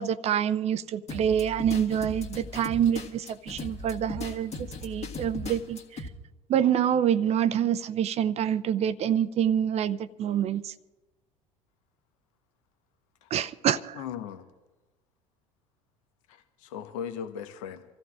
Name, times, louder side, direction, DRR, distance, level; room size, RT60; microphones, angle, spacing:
voice 1, 0.0-4.5 4.8-5.8 6.5-10.6 13.3-13.9, right 9 dB, 35° right, 0.5 m, -26 dB
sound 1, 1.1-6.1, left 3 dB, 35° left, 1.7 m, -38 dB
voice 2, 13.9-14.5 16.3-17.8, left 8 dB, 65° left, 1.0 m, -38 dB
26.5 x 14.0 x 2.4 m
figure-of-eight pair, 70°, 18 cm